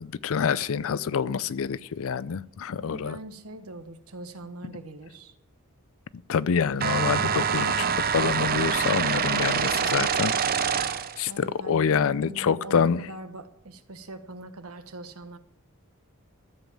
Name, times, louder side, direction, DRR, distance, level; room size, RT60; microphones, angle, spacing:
voice 1, 0.0-3.2 6.3-7.8 8.1-10.8 11.2-13.0, left 6 dB, 65° left, 19 dB, 0.4 m, -26 dB
voice 2, 2.7-5.4 7.7-8.1 11.3-15.4, right 2 dB, 75° right, 9 dB, 1.2 m, -42 dB
sound 1, 6.8-11.2, right 7 dB, 45° right, 0.6 m, -25 dB
13.5 x 7.2 x 7.4 m, 0.75 s
head